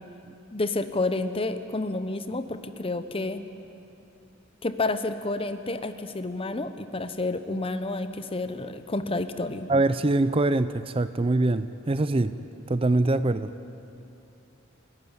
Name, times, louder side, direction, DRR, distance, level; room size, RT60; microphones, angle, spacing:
voice 1, 0.5-3.4 4.6-9.7, left 2 dB, 30° left, 10 dB, 1.0 m, -30 dB
voice 2, 9.7-12.3 12.7-13.5, right 2 dB, 30° right, 13 dB, 0.5 m, -23 dB
29.0 x 12.5 x 9.7 m, 2.7 s
head